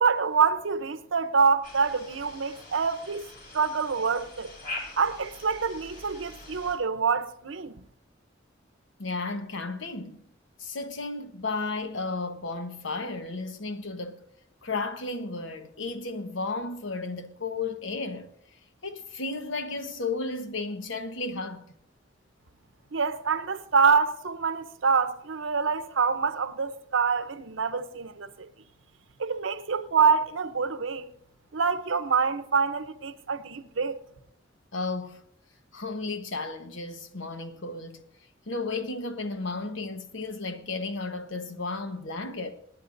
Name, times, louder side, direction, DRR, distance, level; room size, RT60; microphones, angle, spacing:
voice 1, 0.0-3.2 3.5-4.5 5.0-7.7 22.9-28.3 29.2-31.1 31.5-34.0, right 5 dB, 85° right, 0.8 m, -26 dB
sound 1, 1.6-6.8, left 2 dB, 55° left, 4.0 m, -43 dB
voice 2, 9.0-10.2 10.6-14.2 14.6-18.3 18.8-21.6 34.7-35.2 35.7-38.0 38.5-42.5, left 3 dB, 75° left, 1.2 m, -33 dB
25.5 x 10.0 x 2.6 m
head